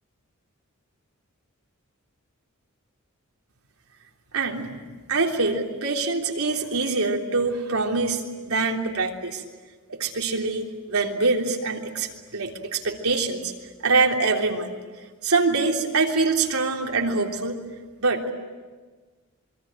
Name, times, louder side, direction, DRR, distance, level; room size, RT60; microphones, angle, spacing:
voice 1, 4.3-4.8 5.1-9.4 9.9-13.5 13.8-14.7 15.2-17.6 18.0-18.2, right 3 dB, 80° right, 1 dB, 3.4 m, -24 dB
27.0 x 23.5 x 9.1 m, 1.4 s
head